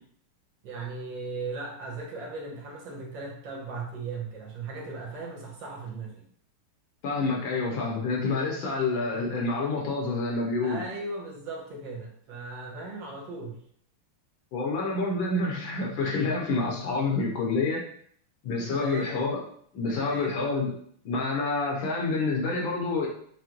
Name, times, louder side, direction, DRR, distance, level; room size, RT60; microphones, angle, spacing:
voice 1, 0.6-6.2 10.6-13.6 18.6-19.2 19.8-20.4, right 3 dB, 65° right, -2 dB, 1.3 m, -37 dB
voice 2, 7.0-10.8 14.5-17.8 18.4-19.4 19.7-20.7 21.0-23.1, left 3 dB, 70° left, -2 dB, 1.5 m, -28 dB
6.2 x 2.2 x 2.9 m, 0.62 s
omnidirectional pair, 2.4 m